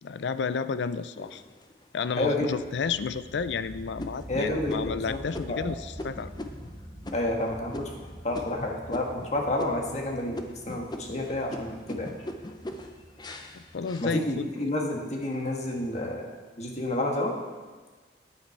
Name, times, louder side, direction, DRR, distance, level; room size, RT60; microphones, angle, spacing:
voice 1, 0.0-1.4 1.9-6.3 13.5-14.5, left 5 dB, 80° left, 13 dB, 0.4 m, -31 dB
sound 1, 1.2-2.0 2.6-2.7 3.2-3.5 4.0-9.3 9.6-10.1 10.3-14.7 15.1-15.7, left 1 dB, 25° left, 0.7 m, -41 dB
voice 2, 2.2-2.5 4.3-5.2 5.4-5.6 7.1-7.9 8.2-12.1 14.0-16.3 16.6-17.3, left 1 dB, 40° left, 0 dB, 1.5 m, -29 dB
sound 2, 2.2-14.6, equal, 40° right, 2.8 m, -46 dB
10.5 x 8.6 x 4.5 m, 1.3 s
head